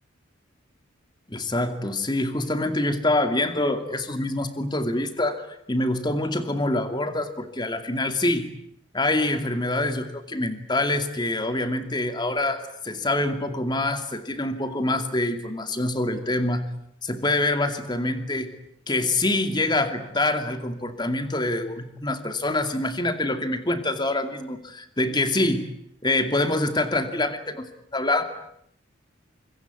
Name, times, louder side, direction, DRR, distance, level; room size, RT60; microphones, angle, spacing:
voice 1, 1.3-8.5 8.9-16.7 17.0-18.5 18.9-25.7 26.0-27.6 27.9-28.2, left 2 dB, 20° left, 9 dB, 2.5 m, -25 dB
25.5 x 23.0 x 9.6 m, 0.71 s
head